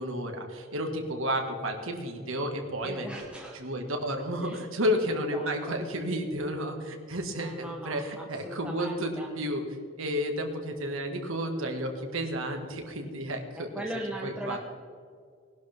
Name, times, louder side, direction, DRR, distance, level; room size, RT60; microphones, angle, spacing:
voice 1, 0.0-3.1 3.5-9.6 10.0-13.8 14.2-14.6, equal, 75° right, 3 dB, 1.9 m, -32 dB
voice 2, 2.8-3.6 4.4-4.6 5.1-5.5 7.3-9.3 13.5-14.6, right 1 dB, 5° right, -1 dB, 1.0 m, -39 dB
19.5 x 11.5 x 3.6 m, 2.2 s
head